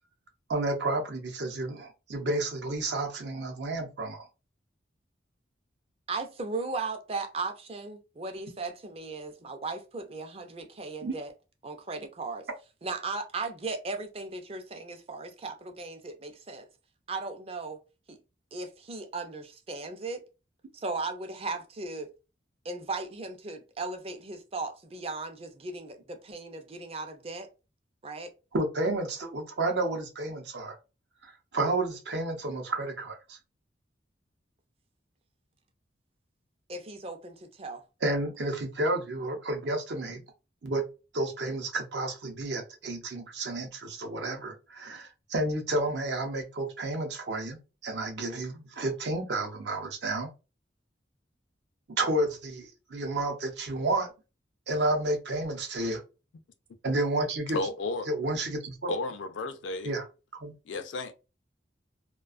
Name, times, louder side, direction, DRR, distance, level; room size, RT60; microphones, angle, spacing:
voice 1, 0.5-4.3 11.0-11.1 28.5-30.8 31.2-33.4 38.0-40.2 40.6-40.8 41.1-50.3 51.9-54.1 54.7-56.0 56.8-57.6 58.1-58.9 59.8-60.0 60.4-60.5, right 2 dB, 65° right, 0.7 m, -31 dB
voice 2, 6.1-11.3 11.6-12.5 12.8-16.7 17.1-17.8 18.1-18.2 18.5-20.2 20.7-22.1 22.6-27.5 28.0-28.3 36.7-37.8, right 3 dB, 30° right, 0.4 m, -37 dB
voice 3, 57.5-58.1 58.9-59.9 60.7-61.1, left 3 dB, 85° left, 0.4 m, -33 dB
2.3 x 2.2 x 2.4 m
head